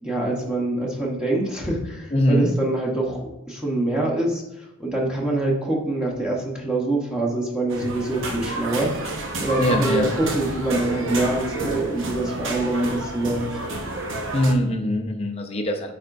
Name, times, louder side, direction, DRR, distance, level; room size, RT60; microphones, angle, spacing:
voice 1, 0.0-4.4 4.8-8.9 9.4-13.8, right 2 dB, 5° right, -3 dB, 1.0 m, -25 dB
voice 2, 2.1-2.5 9.6-10.1 14.3-15.9, left 1 dB, 30° left, 3 dB, 0.6 m, -22 dB
sound 1, 7.7-14.5, right 2 dB, 60° right, 0.9 m, -30 dB
9.3 x 4.2 x 2.6 m, 0.90 s
head